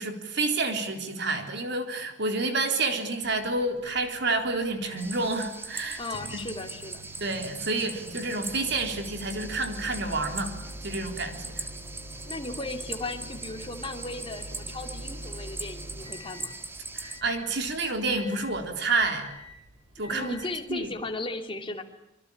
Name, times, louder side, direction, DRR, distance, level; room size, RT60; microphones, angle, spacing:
voice 1, 0.0-6.0 6.3-6.4 7.2-10.5 10.8-11.6 16.9-19.3 20.0-20.4 20.7-20.9, right 3 dB, 60° right, 5 dB, 3.9 m, -29 dB
Microwave oven, 3.2-21.2, equal, 30° right, 7.7 m, -45 dB
sound 1, 5.0-17.2, right 2 dB, 10° right, 1.7 m, -41 dB
voice 2, 6.0-7.1 12.3-16.5 20.1-21.8, left 2 dB, 25° left, 4 dB, 2.9 m, -36 dB
26.0 x 24.5 x 8.8 m, 0.84 s
head